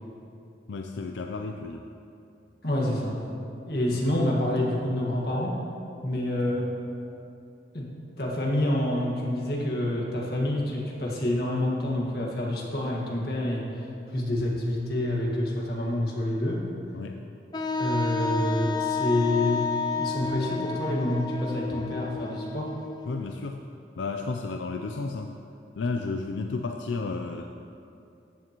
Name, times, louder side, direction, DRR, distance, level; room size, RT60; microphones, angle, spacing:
voice 1, 0.7-1.8 3.9-4.0 16.9-17.2 23.1-23.6 24.0-25.3 25.7-27.6, left 3 dB, 90° left, 4 dB, 0.5 m, -32 dB
voice 2, 2.6-3.2 3.7-5.6 6.0-6.7 7.7-7.9 8.2-13.7 14.1-16.6 17.8-22.7, left 1 dB, 60° left, -3 dB, 1.7 m, -27 dB
Wind instrument woodwind instrument, 17.5-23.3, left 4 dB, 25° left, 0.3 m, -31 dB
14.0 x 8.6 x 3.0 m, 2.6 s
head